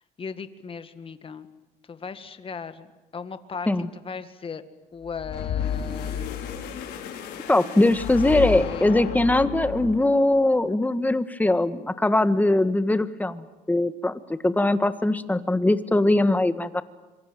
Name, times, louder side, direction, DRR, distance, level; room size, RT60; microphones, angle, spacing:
voice 1, 0.2-1.5 1.9-2.9 3.1-4.6 4.9-6.3 8.3-8.9, left 5 dB, 30° left, 10 dB, 2.1 m, -37 dB
sound 1, 5.0-10.3, left 8 dB, 85° left, 5.3 m, -32 dB
voice 2, 7.5-16.8, left 2 dB, 10° left, 11 dB, 1.5 m, -21 dB
26.0 x 24.0 x 9.2 m, 1.1 s
cardioid pair, 110°, 17 cm